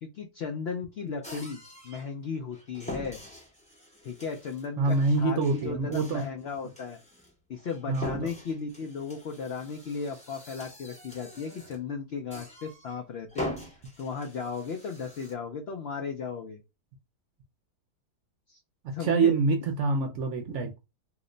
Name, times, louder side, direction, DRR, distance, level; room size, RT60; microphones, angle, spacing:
voice 1, 0.0-3.2 4.0-7.0 7.5-13.5 14.0-16.6 18.5-18.6 18.9-19.4, left 5 dB, 75° left, 0.5 m, -35 dB
sound 1, 1.2-2.1 2.5-11.9 12.3-13.0 13.3-15.3, equal, 10° left, 0.5 m, -43 dB
voice 2, 4.8-6.2 7.9-8.3 18.8-20.8, right 4 dB, 65° right, 0.8 m, -26 dB
2.9 x 2.1 x 3.7 m
omnidirectional pair, 1.6 m